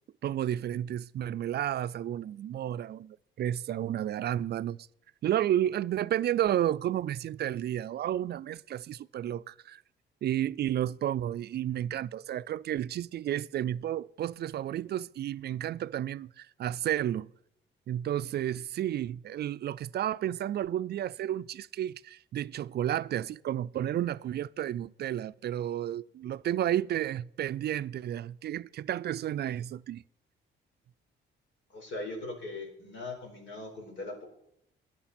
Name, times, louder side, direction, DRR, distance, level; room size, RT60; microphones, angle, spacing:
voice 1, 0.2-4.8 5.2-9.8 10.2-17.3 17.9-30.0, right 11 dB, 55° right, 0.4 m, -32 dB
voice 2, 31.7-34.2, left 2 dB, 70° left, 4.6 m, -40 dB
15.0 x 10.5 x 4.3 m
cardioid pair, 90°, 20 cm